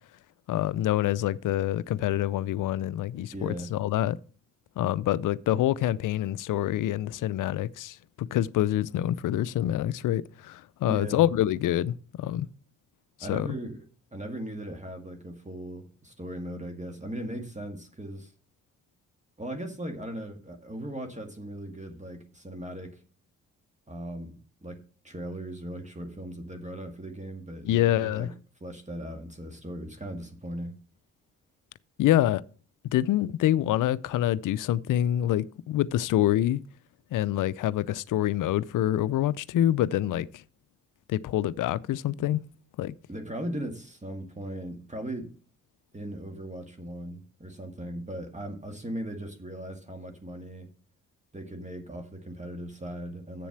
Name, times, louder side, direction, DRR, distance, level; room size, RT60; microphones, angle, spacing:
voice 1, 0.5-4.2 4.8-12.5 13.3-13.5 27.6-28.3 32.0-32.4 32.9-36.6 37.1-40.4 41.1-42.4 42.8-42.9, left 13 dB, 55° left, 0.6 m, -26 dB
voice 2, 3.3-3.7 10.9-11.2 13.2-13.9 14.1-18.3 19.4-23.0 23.9-28.3 28.6-30.7 43.1-45.4 45.9-50.7 51.3-53.5, right 1 dB, 20° right, 1.8 m, -38 dB
7.6 x 7.1 x 5.9 m
hypercardioid pair, 45°, 39 cm